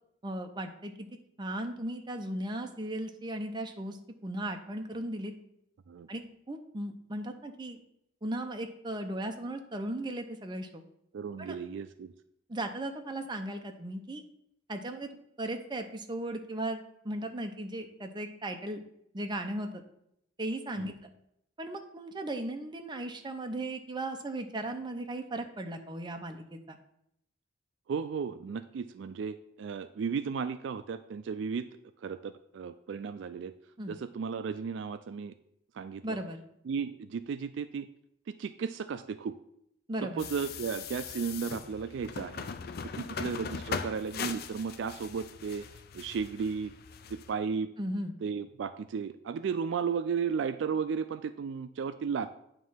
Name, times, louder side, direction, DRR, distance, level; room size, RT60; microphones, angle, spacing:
voice 1, 0.2-1.1 1.4-4.0 4.2-5.3 6.1-7.8 8.2-10.8 11.4-11.6 12.5-14.2 14.7-18.8 19.1-19.8 20.4-21.1 21.6-26.8 33.8-33.9 36.0-36.4 39.9-40.2 47.8-48.1, right 1 dB, 25° right, 5 dB, 0.6 m, -37 dB
voice 2, 11.1-12.1 20.8-20.9 27.9-31.7 32.0-33.5 33.9-35.4 35.7-36.2 36.7-37.9 38.4-39.3 40.0-42.5 42.9-45.7 45.9-46.7 47.1-47.7 48.2-52.3, right 6 dB, 65° right, 12 dB, 0.3 m, -34 dB
sound 1, 40.2-47.3, left 6 dB, 50° left, 0.4 m, -40 dB
9.1 x 3.1 x 5.6 m, 0.76 s
head